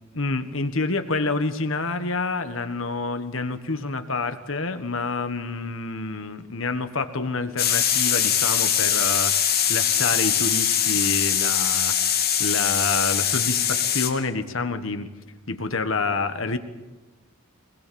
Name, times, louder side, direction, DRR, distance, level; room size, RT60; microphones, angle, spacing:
voice 1, 0.1-15.1 15.5-16.6, left 3 dB, 65° left, 8 dB, 1.5 m, -28 dB
sound 1, 7.6-14.1, left 9 dB, 45° left, 2.6 m, -22 dB
24.5 x 20.0 x 7.0 m, 1.1 s
head